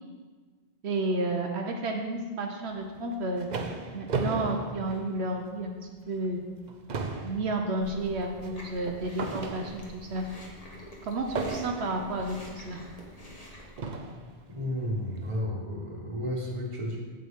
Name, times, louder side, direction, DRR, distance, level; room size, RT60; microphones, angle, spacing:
voice 1, 0.8-3.5 3.9-5.7 6.1-6.4 7.2-10.3 11.1-12.8, right 2 dB, 75° right, 2 dB, 1.1 m, -31 dB
sound 1, 3.0-5.6 6.1-6.3 6.6-10.1 11.4-12.1 13.0-13.1 13.8-14.3, right 3 dB, 50° right, 0.7 m, -35 dB
Chewing mastication, 7.8-13.8, left 1 dB, 35° left, 1.5 m, -46 dB
voice 2, 14.5-17.1, left 1 dB, 30° right, -2 dB, 1.4 m, -32 dB
8.7 x 8.0 x 3.6 m, 1.4 s
omnidirectional pair, 1.1 m